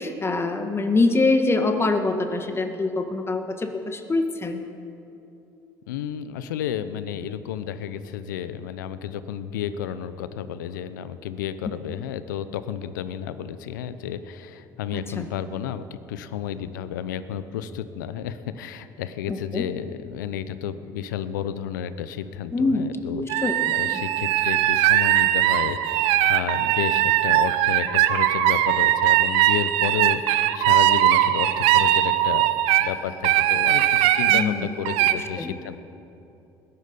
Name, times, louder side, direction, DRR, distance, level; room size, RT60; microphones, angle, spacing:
voice 1, 0.0-4.6 14.9-15.2 19.3-19.6 22.5-22.8 23.1-23.7 34.3-34.7 35.4-35.5, left 3 dB, 25° left, 6 dB, 1.7 m, -24 dB
voice 2, 5.9-23.4 23.7-32.4 32.8-35.8, left 9 dB, 85° left, 13 dB, 0.7 m, -32 dB
sound 1, 23.3-32.9 33.2-34.4 34.9-35.1, right 13 dB, 75° right, 0.7 m, -20 dB
20.0 x 11.5 x 5.3 m, 2.8 s
hypercardioid pair, 65°, 10 cm